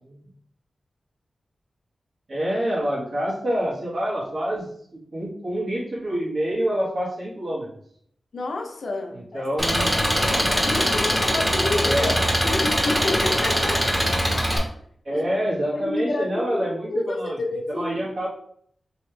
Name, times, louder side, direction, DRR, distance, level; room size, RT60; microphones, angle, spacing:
voice 1, 2.3-4.7 4.9-7.7 9.1-10.5 11.8-12.2 15.0-17.4 17.7-18.3, equal, 60° right, -7 dB, 1.2 m, -27 dB
voice 2, 8.3-10.3 10.6-12.1 12.4-13.9 15.1-15.3 15.7-17.9, left 2 dB, 70° left, 3 dB, 0.7 m, -29 dB
Engine, 9.6-14.6, equal, 5° left, 0.9 m, -22 dB
3.3 x 3.1 x 3.3 m, 0.65 s
wide cardioid pair, 90°, 0 cm